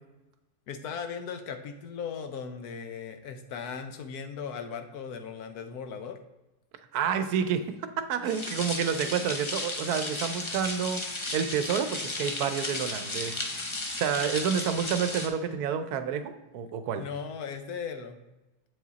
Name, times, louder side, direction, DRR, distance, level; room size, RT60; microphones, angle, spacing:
voice 1, 0.7-6.2 17.0-18.2, left 6 dB, 70° left, 7 dB, 1.1 m, -37 dB
voice 2, 6.9-11.0 11.3-13.4 14.0-17.0, right 7 dB, 75° right, 10 dB, 1.1 m, -29 dB
sound 1, 8.2-15.3, left 2 dB, 40° left, 0.4 m, -34 dB
7.8 x 5.0 x 4.0 m, 1.0 s
omnidirectional pair, 1.7 m